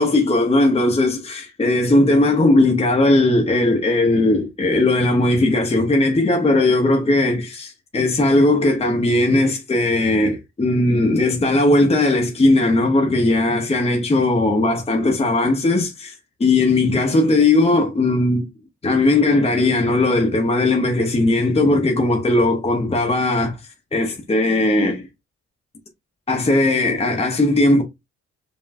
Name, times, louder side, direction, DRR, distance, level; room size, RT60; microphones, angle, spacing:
voice 1, 0.0-16.1 16.4-18.5 18.8-23.6 23.9-25.0 26.3-27.8, left 2 dB, 20° left, 0.9 m, -18 dB
5.2 x 2.4 x 2.6 m
cardioid pair, 90°, 30 cm